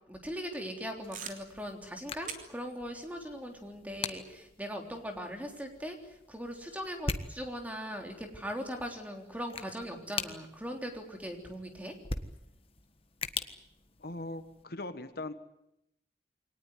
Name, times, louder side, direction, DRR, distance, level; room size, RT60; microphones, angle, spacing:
voice 1, 0.1-12.0, equal, 10° right, 4 dB, 3.5 m, -40 dB
sound 1, 1.0-14.6, left 4 dB, 30° left, 1.5 m, -43 dB
sound 2, 1.1-5.9, right 6 dB, 45° right, 3.3 m, -50 dB
voice 2, 14.0-15.3, left 2 dB, 55° left, 10 dB, 1.4 m, -40 dB
24.0 x 19.0 x 10.0 m, 0.81 s
head